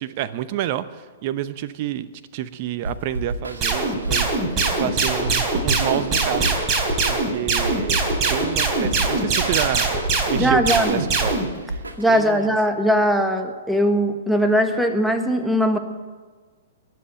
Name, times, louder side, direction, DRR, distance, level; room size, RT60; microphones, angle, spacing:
voice 1, 0.0-4.3 4.8-6.5 7.1-8.0 8.3-11.3 11.7-11.8 12.1-12.5, right 12 dB, 45° right, 13 dB, 0.8 m, -28 dB
sound 1, 2.8-12.4, right 1 dB, 85° right, 1.8 m, -32 dB
sound 2, 3.6-11.5, right 3 dB, 30° right, 3.8 m, -22 dB
voice 2, 10.4-10.9 12.0-15.8, equal, ahead, 5 dB, 1.5 m, -20 dB
21.0 x 7.8 x 8.0 m, 1.4 s
hypercardioid pair, 115°, 0 cm